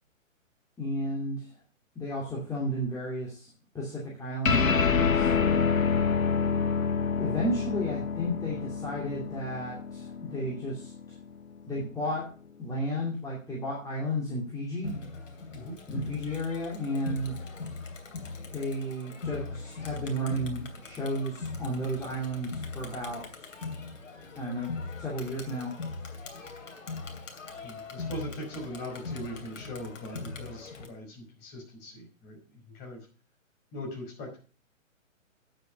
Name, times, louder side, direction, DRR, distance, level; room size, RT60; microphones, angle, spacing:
voice 1, 0.8-1.5 2.0-3.5 3.7-5.3 7.2-10.9 11.7-12.2 12.6-14.9 15.9-17.4 18.5-23.5 24.4-24.7 25.0-25.7, equal, 10° left, -5 dB, 2.6 m, -33 dB
sound 1, 4.4-11.2, left 6 dB, 85° left, 1.0 m, -27 dB
Crowd, 14.8-30.9, left 4 dB, 65° left, 2.9 m, -40 dB
voice 2, 15.5-15.8 27.6-33.1 33.7-34.4, equal, 25° left, 0 dB, 5.1 m, -40 dB
9.5 x 7.7 x 6.5 m, 0.37 s
figure-of-eight pair, 130°, 40 cm